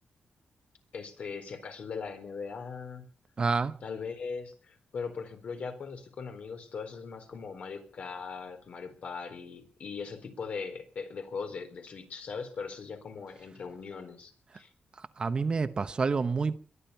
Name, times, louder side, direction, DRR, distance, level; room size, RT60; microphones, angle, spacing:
voice 1, 0.9-3.1 3.8-14.7, left 5 dB, 60° left, 4.2 m, -40 dB
voice 2, 3.4-3.8 15.2-16.6, right 4 dB, 35° right, 1.0 m, -28 dB
22.5 x 11.0 x 5.7 m
wide cardioid pair, 125°, 3 cm